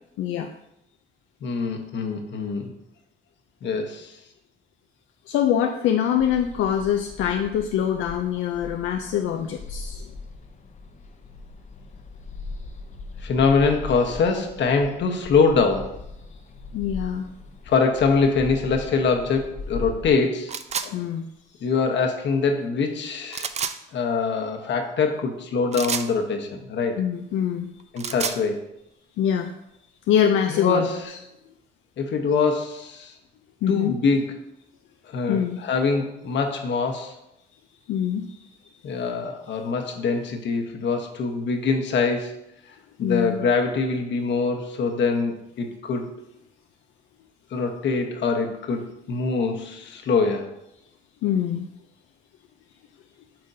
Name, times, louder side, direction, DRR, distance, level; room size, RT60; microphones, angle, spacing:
voice 1, 0.2-0.5 5.3-10.1 16.7-17.2 20.8-21.3 27.0-27.7 28.1-28.2 29.2-29.5 30.1-30.9 33.6-33.9 35.3-35.6 37.9-38.5 43.0-43.4 51.2-51.7, left 9 dB, 85° left, 4 dB, 0.5 m, -24 dB
voice 2, 1.4-2.7 3.6-4.2 13.2-16.0 17.7-20.5 21.6-23.5 23.9-27.0 27.9-28.6 30.5-31.2 32.0-33.1 33.7-34.4 35.1-37.1 38.8-42.4 43.0-46.1 47.5-50.5, left 4 dB, 65° left, 4 dB, 1.1 m, -24 dB
sound 1, 6.2-20.1, left 3 dB, 35° left, 0.7 m, -39 dB
sound 2, 20.5-20.9 23.3-23.8 25.7-26.1 27.8-28.4, right 6 dB, 35° right, 0.5 m, -29 dB
8.8 x 5.1 x 2.7 m, 0.83 s
cardioid pair, 90°, 20 cm